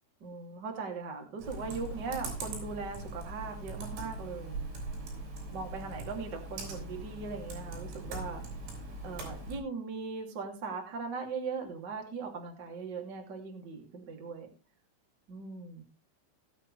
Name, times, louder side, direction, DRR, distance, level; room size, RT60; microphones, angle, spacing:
voice 1, 0.2-4.6 5.5-8.4 9.0-14.5 15.3-15.8, right 4 dB, 30° right, 2 dB, 2.5 m, -39 dB
Computer keyboard, 1.4-9.6, right 2 dB, 75° right, 7.8 m, -41 dB
20.0 x 8.4 x 3.4 m, 0.30 s
omnidirectional pair, 5.7 m